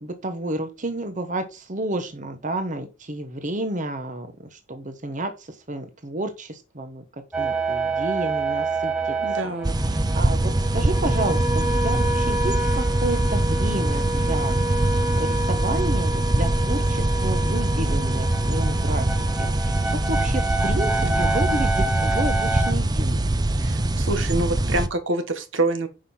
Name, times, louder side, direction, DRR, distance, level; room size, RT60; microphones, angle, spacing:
voice 1, 0.0-7.0 7.4-9.1 9.4-9.5 9.8-19.1 19.4-23.2, right 1 dB, 40° right, 1.1 m, -31 dB
sound 1, 7.3-22.7, right 2 dB, 5° right, 1.1 m, -28 dB
voice 2, 9.2-9.7 21.0-21.3 23.6-25.9, right 2 dB, 75° right, 1.6 m, -26 dB
sound 2, 9.6-24.9, right 1 dB, 20° right, 0.5 m, -23 dB
9.9 x 5.6 x 4.3 m
head